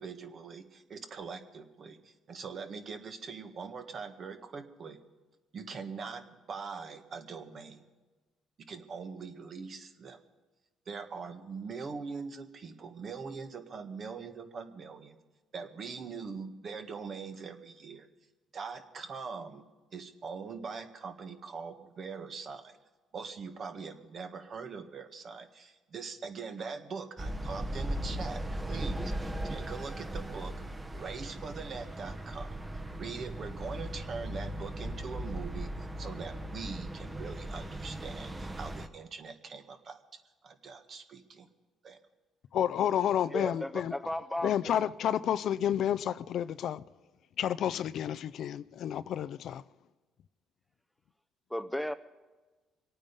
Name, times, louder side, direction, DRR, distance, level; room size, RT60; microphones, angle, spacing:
voice 1, 0.0-5.0 5.5-7.8 8.7-10.2 10.8-15.2 15.5-18.1 18.5-19.6 19.9-22.8 23.1-30.5 30.9-35.7 36.0-40.0 40.4-41.5 41.8-42.0, right 5 dB, 45° right, 1.8 m, -42 dB
sound 1, 27.2-38.9, right 1 dB, 15° right, 1.1 m, -38 dB
voice 2, 42.5-43.9 44.4-46.8 47.4-49.6, left 10 dB, 65° left, 0.4 m, -30 dB
voice 3, 43.3-44.7 51.5-51.9, left 1 dB, 5° left, 0.6 m, -35 dB
25.5 x 9.1 x 5.4 m
cardioid pair, 95°, 0 cm